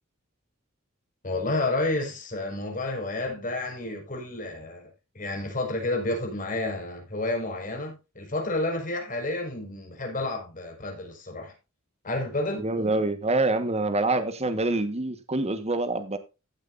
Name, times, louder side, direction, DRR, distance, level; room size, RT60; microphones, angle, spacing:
voice 1, 1.2-11.5 12.0-12.7, left 2 dB, 40° left, 5.1 m, -30 dB
voice 2, 12.6-16.2, right 2 dB, 30° right, 1.3 m, -26 dB
15.5 x 8.0 x 2.6 m
head